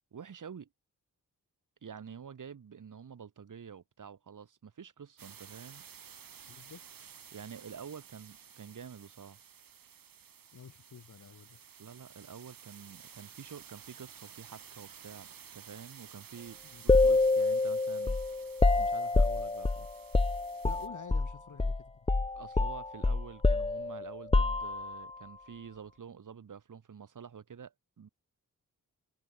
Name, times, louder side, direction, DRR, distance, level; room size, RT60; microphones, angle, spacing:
voice 1, 0.1-0.7 1.8-5.8 7.3-9.4 11.8-15.3 15.5-18.4 18.7-20.0 22.3-28.1, right 7 dB, 65° right, 3.7 m, -48 dB
sound 1, 5.2-20.9, right 8 dB, 80° right, 6.6 m, -53 dB
voice 2, 6.5-6.8 10.5-11.6 16.6-16.8 20.6-21.9, left 6 dB, 60° left, 5.6 m, -49 dB
sound 2, 16.9-21.3 21.6-21.8 22.1-25.1, left 3 dB, 15° left, 1.0 m, -27 dB
wide cardioid pair, 100°, 34 cm